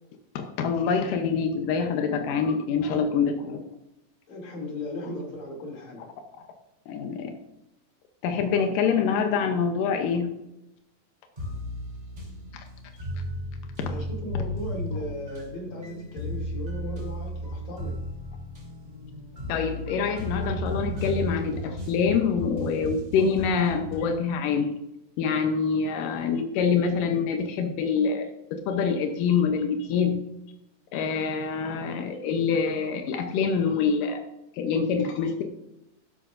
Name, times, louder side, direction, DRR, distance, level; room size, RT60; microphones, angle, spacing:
voice 1, 0.4-3.6 6.9-7.3 8.2-10.3 19.5-24.7 25.2-28.3 28.7-30.3 30.9-34.2 34.6-35.4, left 6 dB, 90° left, 5 dB, 2.6 m, -25 dB
voice 2, 2.9-3.4 4.3-6.0 13.8-18.0, left 1 dB, 60° left, -2 dB, 4.1 m, -37 dB
sound 1, 11.4-24.1, equal, 15° right, 3.2 m, -35 dB
11.5 x 11.5 x 2.6 m, 0.85 s
omnidirectional pair, 3.7 m